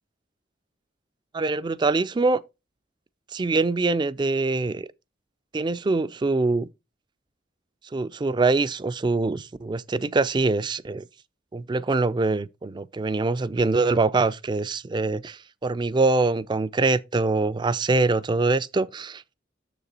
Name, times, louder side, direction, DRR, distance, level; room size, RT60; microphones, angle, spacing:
voice 1, 1.3-2.4 3.3-4.9 5.5-6.7 7.9-11.1 11.5-19.2, right 3 dB, 25° right, 0.3 m, -24 dB
6.9 x 6.7 x 3.9 m
head